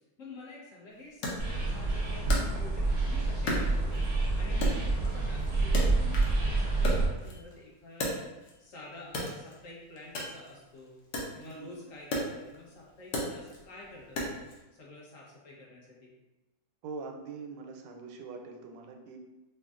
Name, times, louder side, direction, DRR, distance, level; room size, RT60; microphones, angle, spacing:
voice 1, 0.2-4.0 4.3-8.2 8.6-11.0 11.3-14.5 14.8-16.1, left 2 dB, 55° left, -4 dB, 1.2 m, -48 dB
Wood, 1.2-3.0 3.5-4.2 4.6-6.4 6.7-8.6 9.1-14.6, left 1 dB, 80° left, 1.4 m, -36 dB
sound 1, 1.4-7.1, right 3 dB, 50° right, 0.5 m, -28 dB
voice 2, 11.4-11.7 16.8-19.2, right 4 dB, 85° right, 3 dB, 1.3 m, -43 dB
5.2 x 2.3 x 2.4 m, 1.0 s
omnidirectional pair, 1.9 m